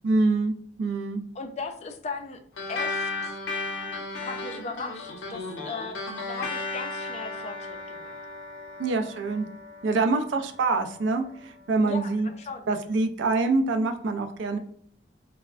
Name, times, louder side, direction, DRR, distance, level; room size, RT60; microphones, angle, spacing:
voice 1, 0.0-1.2 8.8-9.5 9.8-12.3 12.7-14.6, right 3 dB, 85° right, 7 dB, 0.4 m, -25 dB
voice 2, 1.3-2.4 2.7-3.3 4.2-6.0 6.3-8.2 10.0-10.1 11.8-12.7, left 4 dB, 35° left, 6 dB, 0.3 m, -37 dB
sound 1, 2.6-11.4, left 3 dB, 85° left, 0.6 m, -35 dB
3.2 x 2.1 x 2.3 m, 0.64 s
head